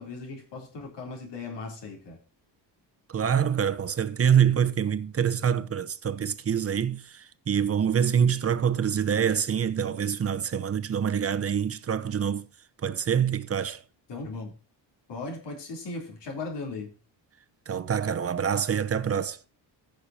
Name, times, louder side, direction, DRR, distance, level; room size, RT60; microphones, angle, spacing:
voice 1, 0.0-2.2 14.1-14.5 15.1-16.9, left 3 dB, 70° left, 3.6 m, -37 dB
voice 2, 3.1-12.4 12.8-13.8 17.7-19.4, right 8 dB, 35° right, 0.9 m, -25 dB
15.5 x 6.6 x 2.8 m
cardioid pair, 110°, 43 cm